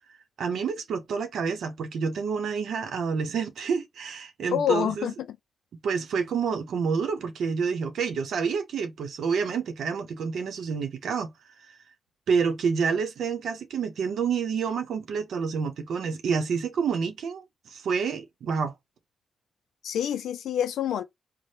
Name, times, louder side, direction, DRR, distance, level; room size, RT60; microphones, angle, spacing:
voice 1, 0.4-5.1 5.8-11.3 11.6-11.8 12.3-18.7, right 6 dB, 75° right, 0.7 m, -28 dB
voice 2, 4.5-5.1 19.8-21.0, left 9 dB, 85° left, 0.3 m, -26 dB
3.2 x 2.1 x 4.2 m
cardioid pair, 65°, 0 cm